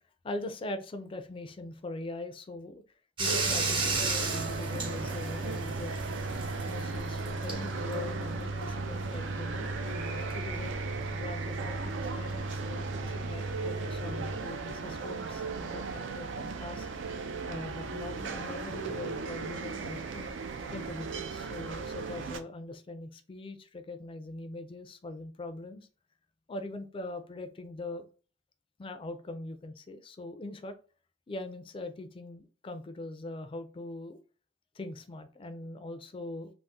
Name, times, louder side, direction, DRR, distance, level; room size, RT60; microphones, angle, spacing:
voice 1, 0.2-2.8 3.2-5.9 6.7-10.7 11.1-16.9 17.5-20.3 20.7-25.9 26.5-28.1 28.8-30.7 31.3-34.2 34.8-36.5, left 2 dB, 30° left, 9 dB, 0.4 m, -42 dB
Bathtub (filling or washing), 3.2-14.4, right 2 dB, 25° right, 0.6 m, -35 dB
sound 1, 3.2-22.4, right 4 dB, 80° right, 0.4 m, -37 dB
3.5 x 2.0 x 2.6 m, 0.38 s
head